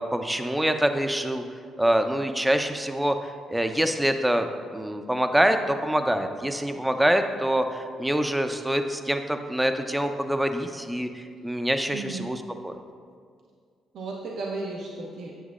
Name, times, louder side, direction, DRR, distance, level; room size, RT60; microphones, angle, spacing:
voice 1, 0.0-1.4 1.8-12.7, right 1 dB, 5° right, 7 dB, 0.5 m, -25 dB
voice 2, 11.9-12.3 13.9-15.3, right 3 dB, 75° right, -2 dB, 0.7 m, -34 dB
8.1 x 7.3 x 2.4 m, 2.1 s
cardioid pair, 90°, 0 cm